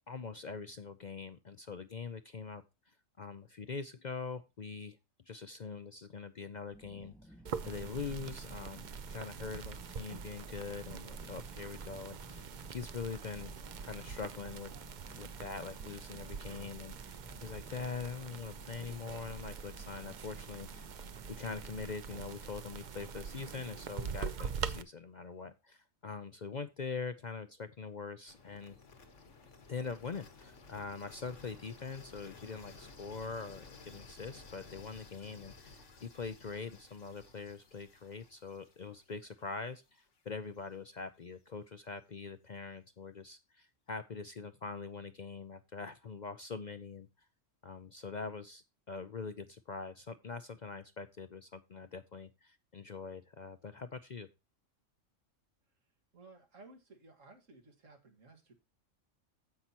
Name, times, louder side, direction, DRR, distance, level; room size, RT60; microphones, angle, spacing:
voice 1, 0.1-5.0 5.3-7.4 7.7-13.5 13.8-14.7 15.2-20.9 21.3-28.8 29.7-47.1 47.6-54.3, left 5 dB, 50° left, 12 dB, 0.6 m, -43 dB
sound 1, 6.7-21.9, equal, ahead, 0.5 m, -57 dB
sound 2, 7.5-24.8, right 6 dB, 45° right, 0.6 m, -44 dB
sound 3, 28.3-40.2, left 4 dB, 65° left, 1.9 m, -56 dB
voice 2, 56.1-58.5, right 3 dB, 80° right, 4 dB, 2.3 m, -57 dB
15.5 x 5.7 x 2.9 m, 0.26 s
omnidirectional pair, 1.3 m